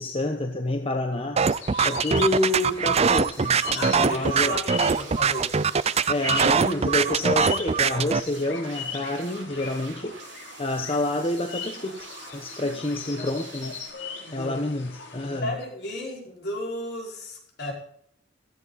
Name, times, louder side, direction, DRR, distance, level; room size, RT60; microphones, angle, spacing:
voice 1, 0.0-1.4 1.8-4.6 6.1-10.2 10.6-13.7 14.3-15.6, left 2 dB, 30° left, 5 dB, 1.1 m, -28 dB
sound 1, 1.4-15.4, left 6 dB, 85° left, 4.8 m, -39 dB
sound 2, 1.4-8.2, right 5 dB, 35° right, 0.5 m, -22 dB
sound 3, 2.1-13.9, right 6 dB, 75° right, 2.4 m, -46 dB
voice 2, 3.7-5.6 12.6-12.8 13.1-13.3 13.9-14.6 15.3-17.7, left 1 dB, 60° left, -1 dB, 5.3 m, -34 dB
16.0 x 14.0 x 4.1 m, 0.67 s
head